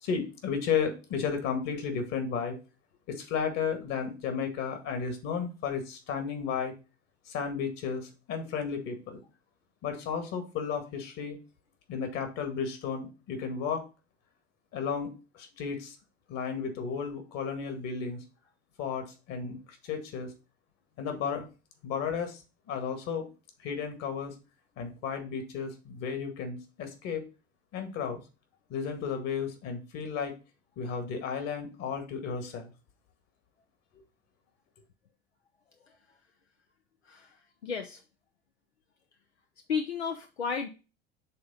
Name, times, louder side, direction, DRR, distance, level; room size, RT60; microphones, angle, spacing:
voice 1, 0.0-2.6 3.1-6.7 7.3-9.2 9.8-11.4 11.9-13.8 14.7-16.0 16.3-18.2 18.8-19.6 19.8-20.3 21.0-21.5 21.8-22.4 22.7-23.3 23.6-24.3 24.8-27.3 27.7-28.2 28.7-30.3 30.8-32.7, left 6 dB, 50° left, 6 dB, 2.0 m, -33 dB
voice 2, 37.0-37.4 37.6-38.0 39.7-40.7, left 6 dB, 85° left, 5 dB, 0.7 m, -32 dB
6.6 x 3.8 x 5.4 m, 0.31 s
figure-of-eight pair, 70°, 32 cm